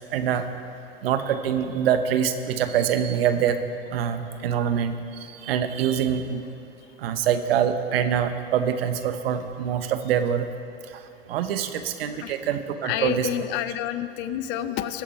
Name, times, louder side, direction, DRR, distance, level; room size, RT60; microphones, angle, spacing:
voice 1, 0.1-0.5 1.0-3.6 3.9-5.0 5.3-6.4 7.0-10.5 11.3-13.3, right 8 dB, 70° right, 9 dB, 1.0 m, -24 dB
voice 2, 12.8-15.0, left 11 dB, 35° left, 13 dB, 0.5 m, -29 dB
20.0 x 7.2 x 4.5 m, 2.6 s
hypercardioid pair, 100°, 32 cm